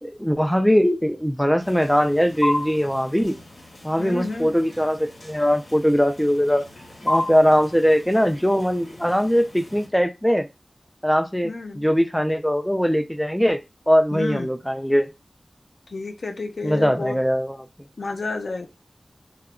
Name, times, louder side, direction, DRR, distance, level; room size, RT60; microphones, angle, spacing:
voice 1, 0.0-3.4 3.8-6.7 7.0-10.5 11.0-13.6 13.9-15.1 16.6-17.7, equal, ahead, 0.3 m, -21 dB
sound 1, 1.6-9.9, left 1 dB, 65° left, 1.1 m, -33 dB
voice 2, 4.0-4.5 11.4-11.9 14.1-14.5 15.9-17.2 18.0-18.7, left 3 dB, 85° left, 0.4 m, -30 dB
2.2 x 2.1 x 3.5 m
wide cardioid pair, 80°, 0 cm